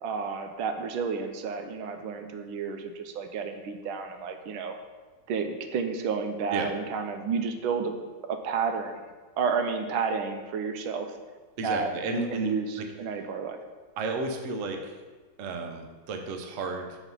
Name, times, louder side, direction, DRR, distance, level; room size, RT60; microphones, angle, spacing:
voice 1, 0.0-4.8 5.3-7.9 8.3-9.0 9.4-11.1 11.6-13.6, right 5 dB, 85° right, 6 dB, 1.5 m, -31 dB
voice 2, 11.6-12.9 14.0-14.9 15.4-17.0, right 3 dB, 60° right, 4 dB, 0.8 m, -33 dB
7.0 x 4.1 x 5.4 m, 1.3 s
omnidirectional pair, 2.2 m